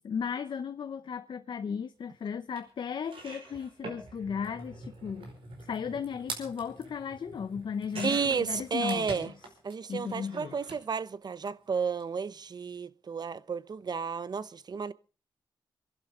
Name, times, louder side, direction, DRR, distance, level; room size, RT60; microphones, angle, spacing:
voice 1, 0.0-5.3 5.6-9.3 9.9-10.6, left 6 dB, 60° left, 0.8 m, -35 dB
sound 1, 2.6-2.7 3.0-9.7 10.0-10.8 11.8-12.0 12.3-12.4, right 3 dB, 75° right, 4.9 m, -44 dB
voice 2, 8.0-9.3 9.6-14.9, right 5 dB, 50° right, 0.8 m, -32 dB
26.5 x 11.5 x 3.8 m
cardioid pair, 90°, 9 cm